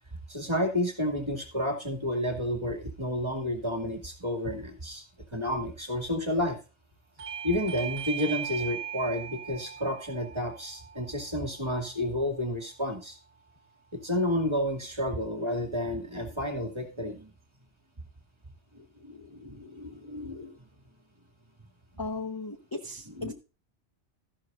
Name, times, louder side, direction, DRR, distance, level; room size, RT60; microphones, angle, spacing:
voice 1, 0.3-5.0 5.3-6.6 7.4-13.2 13.9-17.3 18.7-20.5 23.1-23.3, left 1 dB, 20° right, 3 dB, 2.4 m, -31 dB
Bell / Doorbell, 7.2-12.4, right 9 dB, 55° right, 1.1 m, -39 dB
voice 2, 22.0-23.3, left 3 dB, 20° left, 6 dB, 0.9 m, -36 dB
13.5 x 11.5 x 2.5 m, 0.33 s
omnidirectional pair, 1.2 m